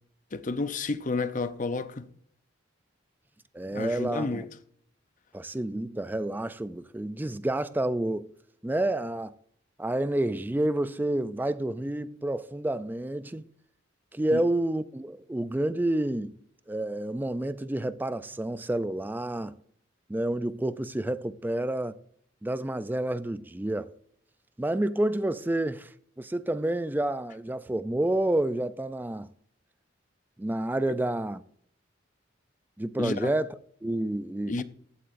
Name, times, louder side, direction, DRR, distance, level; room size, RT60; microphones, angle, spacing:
voice 1, 0.3-2.1 3.7-4.5 14.3-14.4 33.0-33.3 34.5-34.6, left 3 dB, 40° left, 0.6 m, -31 dB
voice 2, 3.5-4.5 5.3-8.3 8.6-9.3 9.8-13.4 14.1-16.3 16.7-19.5 20.1-22.0 22.4-23.9 24.6-29.3 30.4-31.4 32.8-33.5 33.8-34.6, right 1 dB, 10° right, 0.3 m, -29 dB
14.5 x 8.6 x 2.6 m
head